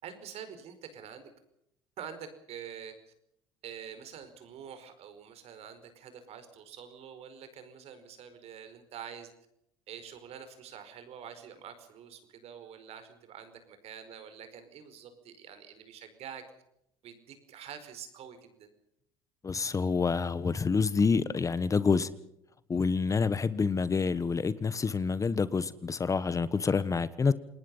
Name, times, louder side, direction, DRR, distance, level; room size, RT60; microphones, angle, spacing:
voice 1, 0.0-1.3 2.0-2.9 3.6-9.3 9.9-16.4 17.0-18.7, right 8 dB, 60° right, 10 dB, 5.0 m, -46 dB
voice 2, 19.4-22.1 22.7-27.3, left 5 dB, 25° left, 16 dB, 1.3 m, -27 dB
28.0 x 19.5 x 5.6 m, 0.78 s
supercardioid pair, 80°, 12 cm